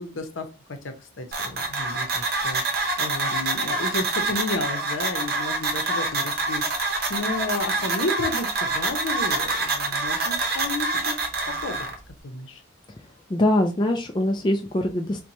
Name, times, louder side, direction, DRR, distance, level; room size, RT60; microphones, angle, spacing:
voice 1, 0.0-11.2 11.5-11.9 12.2-12.6, left 2 dB, 75° left, 6 dB, 0.7 m, -32 dB
sound 1, 1.3-11.9, right 3 dB, 50° right, 0.7 m, -26 dB
voice 2, 13.3-15.2, left 1 dB, 25° left, 3 dB, 0.3 m, -23 dB
4.3 x 2.2 x 2.7 m, 0.29 s
head